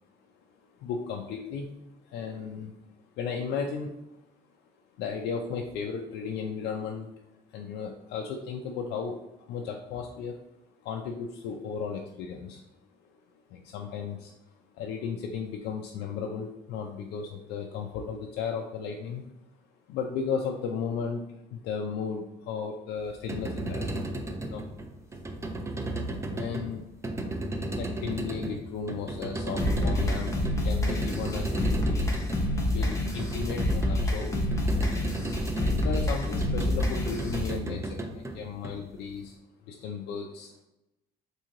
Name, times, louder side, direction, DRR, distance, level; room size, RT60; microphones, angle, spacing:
voice 1, 0.8-1.7 2.0-2.7 3.2-4.1 5.0-7.1 7.5-10.4 10.8-12.6 13.5-14.3 14.7-19.2 19.9-21.2 21.5-23.9 24.4-24.6 26.3-26.8 27.8-30.4 30.6-32.0 32.7-34.5 35.6-39.3 39.6-40.6, left 6 dB, 80° left, 2 dB, 0.4 m, -35 dB
sound 1, 23.1-39.2, right 1 dB, 15° right, 0.4 m, -35 dB
sound 2, 29.6-37.6, left 1 dB, 20° left, 0.7 m, -28 dB
2.9 x 2.7 x 3.7 m, 0.90 s
cardioid pair, 110°, 17 cm